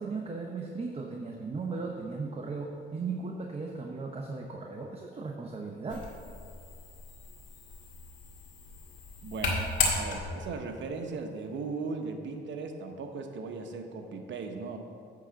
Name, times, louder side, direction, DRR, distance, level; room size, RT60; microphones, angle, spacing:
voice 1, 0.0-6.1, right 4 dB, 30° right, 1 dB, 0.8 m, -37 dB
sound 1, 5.9-10.6, left 3 dB, 75° left, 1.9 m, -34 dB
voice 2, 9.2-9.6 9.9-14.8, right 4 dB, 65° right, 4 dB, 1.0 m, -37 dB
9.7 x 3.9 x 7.1 m, 2.4 s
cardioid pair, 90°, 20 cm